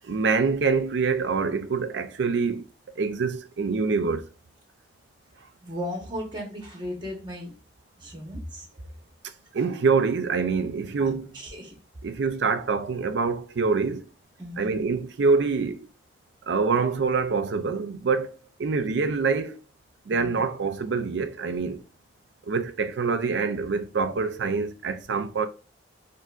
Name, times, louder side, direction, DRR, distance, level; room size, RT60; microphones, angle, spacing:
voice 1, 0.0-2.7 3.0-4.3 9.5-11.3 12.0-14.1 14.6-15.9 16.5-19.6 20.1-21.8 22.5-25.5, right 4 dB, 75° right, 0.4 m, -25 dB
voice 2, 5.6-7.5 8.0-8.7 11.0-11.7 14.4-14.8 20.1-20.4, equal, 25° right, 1.1 m, -36 dB
3.8 x 2.6 x 2.4 m
head